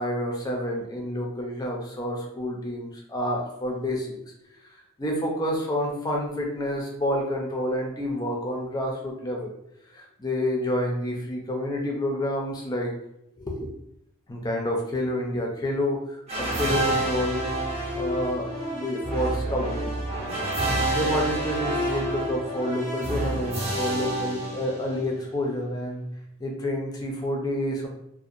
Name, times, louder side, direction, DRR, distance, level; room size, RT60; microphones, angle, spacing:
voice 1, 0.0-4.2 5.0-9.5 9.9-12.9 13.4-13.7 14.3-17.4 17.9-19.9 20.5-20.6 20.9-26.0 26.4-27.9, left 1 dB, 20° left, 0 dB, 0.4 m, -29 dB
sound 1, 16.3-25.2, right 1 dB, 30° right, 0.6 m, -28 dB
2.4 x 2.1 x 2.6 m, 0.77 s
head